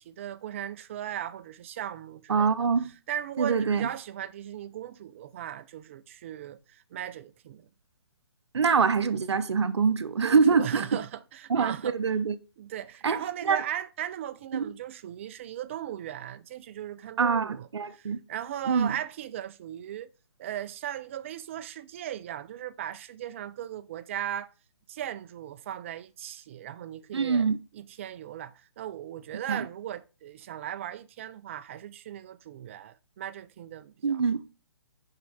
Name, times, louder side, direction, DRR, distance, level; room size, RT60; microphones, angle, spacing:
voice 1, 0.0-2.7 3.1-7.7 10.2-12.0 12.6-20.1 20.4-24.5 24.9-27.5 27.7-34.2, right 11 dB, 30° right, 0.4 m, -37 dB
voice 2, 2.3-2.9 3.4-3.9 8.5-10.9 11.5-12.4 13.0-13.2 13.4-13.6 14.5-14.7 17.2-18.2 18.7-18.9 27.1-27.6 29.5-29.6 34.0-34.5, right 5 dB, 85° right, 0.7 m, -24 dB
5.7 x 5.1 x 4.1 m
hypercardioid pair, 155°, 14 cm